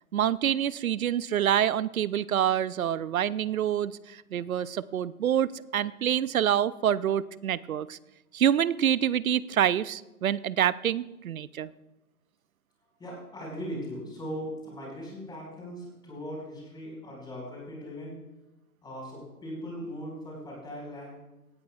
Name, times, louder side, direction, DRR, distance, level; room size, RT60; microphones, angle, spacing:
voice 1, 0.1-8.0 8.3-11.7, right 10 dB, 70° right, 19 dB, 0.6 m, -27 dB
voice 2, 13.0-18.1 18.8-21.1, equal, 10° left, -3 dB, 5.0 m, -39 dB
18.5 x 13.5 x 2.4 m, 0.98 s
figure-of-eight pair, 120°, 44 cm